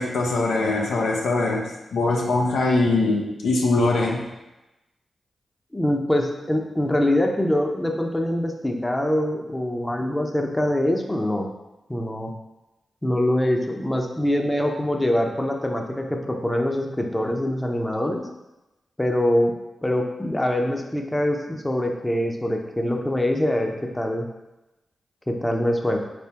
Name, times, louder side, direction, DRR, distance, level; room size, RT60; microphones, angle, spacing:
voice 1, 0.0-1.6 1.9-4.3, left 2 dB, 85° left, -1 dB, 0.6 m, -22 dB
voice 2, 5.7-11.5 11.9-12.3 13.0-18.2 19.0-19.5 19.8-24.3 25.3-26.0, left 1 dB, 15° left, 2 dB, 0.6 m, -24 dB
4.2 x 3.4 x 2.9 m, 0.99 s
cardioid pair, 45°, 0 cm